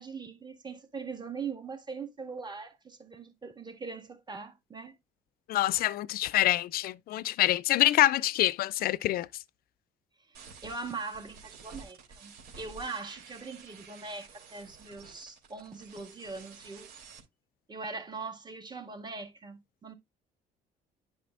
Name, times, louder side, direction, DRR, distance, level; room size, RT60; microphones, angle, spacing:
voice 1, 0.0-5.0 10.3-10.4 10.6-16.9 17.7-19.9, right 4 dB, 25° right, 1.9 m, -41 dB
voice 2, 5.5-9.3, left 15 dB, 65° left, 0.4 m, -26 dB
sound 1, 10.3-17.2, right 5 dB, 70° right, 3.3 m, -51 dB
10.0 x 5.5 x 2.5 m
cardioid pair, 110°, 17 cm